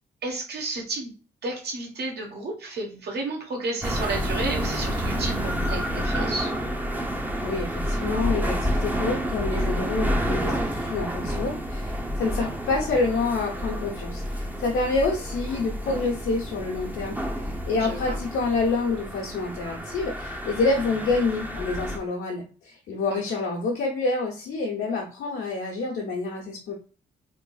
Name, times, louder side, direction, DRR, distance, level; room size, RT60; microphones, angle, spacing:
voice 1, 0.2-1.1 1.4-6.5 17.8-18.2 23.1-23.2, right 2 dB, 60° right, 1 dB, 1.2 m, -32 dB
sound 1, 3.8-22.0, equal, 10° right, 0.6 m, -29 dB
voice 2, 7.4-26.7, left 3 dB, 75° left, -3 dB, 0.9 m, -27 dB
3.6 x 2.6 x 2.3 m, 0.38 s
supercardioid pair, 65°, 19 cm